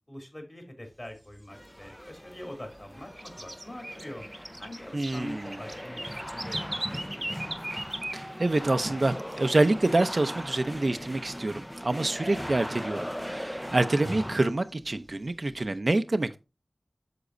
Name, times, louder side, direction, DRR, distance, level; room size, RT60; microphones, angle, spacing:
voice 1, 0.1-4.3 4.6-6.0 6.3-7.5, left 1 dB, 35° left, 3.0 m, -43 dB
sound 1, 0.9-2.4 2.8-8.8 9.1-9.2 9.5-10.1 10.4-11.5 11.8-11.9 12.3-12.4 12.9-14.0 14.5-15.8, right 1 dB, 25° right, 1.0 m, -39 dB
sound 2, 1.5-14.4, equal, 5° left, 0.6 m, -39 dB
voice 2, 4.9-5.6 8.1-16.4, right 2 dB, 60° right, 0.6 m, -27 dB
8.1 x 6.9 x 2.6 m
wide cardioid pair, 60°, 0 cm